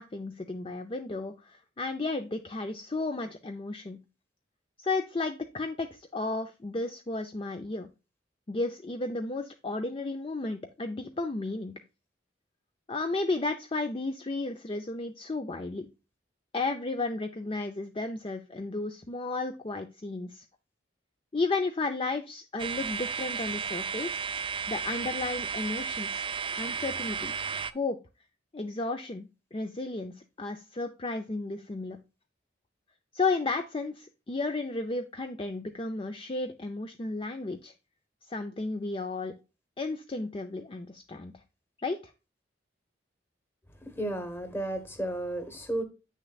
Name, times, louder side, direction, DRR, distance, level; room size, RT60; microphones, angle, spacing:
voice 1, 0.0-4.0 4.8-7.9 8.5-11.7 12.9-15.9 16.5-20.4 21.3-27.3 27.7-28.0 28.5-32.0 33.1-37.7 38.3-39.3 39.8-41.3 41.8-42.0, left 3 dB, 30° left, 0.5 m, -33 dB
sound 1, 22.6-27.7, right 6 dB, 30° right, 0.3 m, -33 dB
voice 2, 43.8-45.8, right 1 dB, 15° left, 1.2 m, -33 dB
8.7 x 6.5 x 2.3 m
head